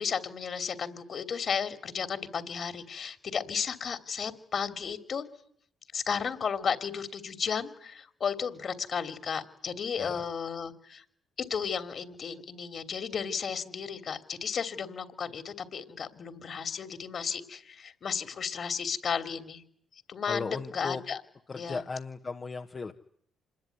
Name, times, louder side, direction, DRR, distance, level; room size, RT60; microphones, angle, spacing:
voice 1, 0.0-5.2 5.9-11.0 11.4-19.6 20.1-21.2 21.6-21.8, left 6 dB, 50° left, 10 dB, 3.0 m, -34 dB
voice 2, 20.3-21.0 21.5-22.9, left 4 dB, 35° left, 3 dB, 1.4 m, -36 dB
26.5 x 21.0 x 9.5 m, 0.67 s
cardioid pair, 90°, 0 cm